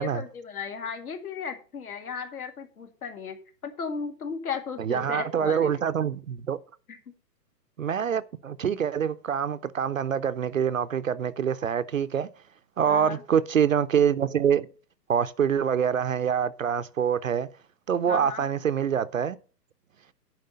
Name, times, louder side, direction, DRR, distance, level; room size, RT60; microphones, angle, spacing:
voice 1, 0.0-3.4 3.6-5.8 6.9-7.0 12.9-13.2 18.1-18.5, left 6 dB, 60° left, 2.1 m, -35 dB
voice 2, 4.8-6.6 7.8-12.3 12.8-14.7 15.1-17.5 17.9-19.4, right 8 dB, 55° right, 0.5 m, -25 dB
10.5 x 4.8 x 6.6 m
hypercardioid pair, 175°, 50 cm